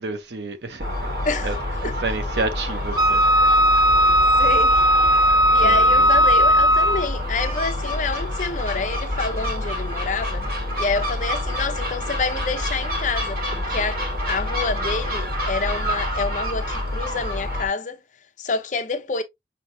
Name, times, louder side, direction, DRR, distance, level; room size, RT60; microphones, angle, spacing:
voice 1, 0.0-1.1 1.4-1.5 1.8-3.2 5.6-6.1, right 3 dB, 70° right, 0.7 m, -30 dB
Gull seagull, 0.8-17.7, left 1 dB, 55° right, 1.7 m, -27 dB
voice 2, 1.2-1.6 1.8-1.9 4.4-10.5 10.8-14.0 14.3-18.0 18.4-19.2, left 4 dB, 40° left, 0.6 m, -28 dB
Wind instrument woodwind instrument, 3.0-7.2, equal, 20° right, 0.4 m, -17 dB
6.1 x 2.8 x 2.6 m
head